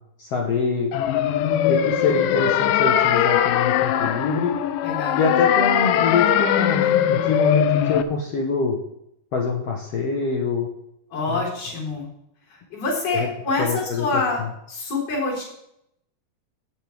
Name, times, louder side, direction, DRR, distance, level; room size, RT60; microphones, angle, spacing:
voice 1, 0.2-0.9 1.7-4.5 5.2-8.8 9.3-10.7 11.3-11.4 13.1-13.3 13.6-14.1 14.4-14.5, left 4 dB, 75° left, 0 dB, 1.4 m, -25 dB
sound 1, 0.9-8.0, left 10 dB, 90° left, 1.8 m, -20 dB
voice 2, 4.8-5.4 11.1-12.1 12.5-14.4 14.7-15.4, left 3 dB, 40° left, -4 dB, 5.1 m, -26 dB
17.0 x 7.9 x 3.5 m, 0.77 s
omnidirectional pair, 4.5 m